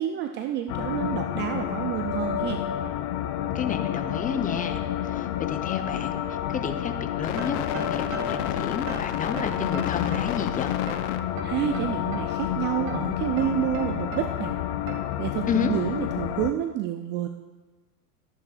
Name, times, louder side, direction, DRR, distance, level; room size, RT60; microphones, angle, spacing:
voice 1, 0.0-2.6 11.4-14.5 15.2-17.3, right 11 dB, 25° right, 6 dB, 0.4 m, -29 dB
sound 1, 0.7-16.5, left 11 dB, 50° left, 0.7 m, -29 dB
voice 2, 3.5-10.7 15.5-15.7, left 7 dB, 15° left, 8 dB, 0.7 m, -31 dB
sound 2, 7.4-8.5 8.9-10.4 10.9-12.4 12.9-14.4 14.9-15.2, right 5 dB, 55° right, 2.5 m, -38 dB
13.0 x 11.0 x 2.5 m, 1.2 s
hypercardioid pair, 100°, 47 cm